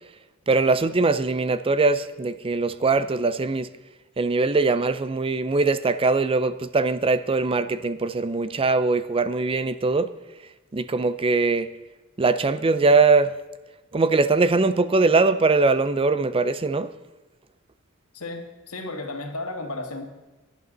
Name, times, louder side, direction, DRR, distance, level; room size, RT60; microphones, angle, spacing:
voice 1, 0.5-3.7 4.2-10.1 10.7-11.7 12.2-13.3 13.9-16.9, right 3 dB, 25° right, 0.5 m, -21 dB
voice 2, 18.1-20.1, left 2 dB, 85° left, 1.9 m, -33 dB
17.0 x 11.0 x 4.0 m
head